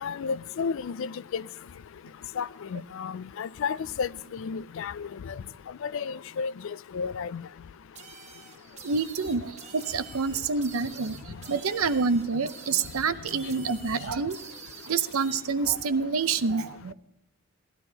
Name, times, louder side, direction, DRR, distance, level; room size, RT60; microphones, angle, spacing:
voice 1, 0.0-1.4 2.4-5.1 5.8-7.4, left 6 dB, 60° left, 0.3 m, -32 dB
sound 1, 7.9-15.4, right 5 dB, 30° right, 1.1 m, -47 dB
voice 2, 8.8-14.4 14.9-16.9, right 5 dB, 75° right, 0.7 m, -27 dB
17.0 x 12.0 x 2.8 m
head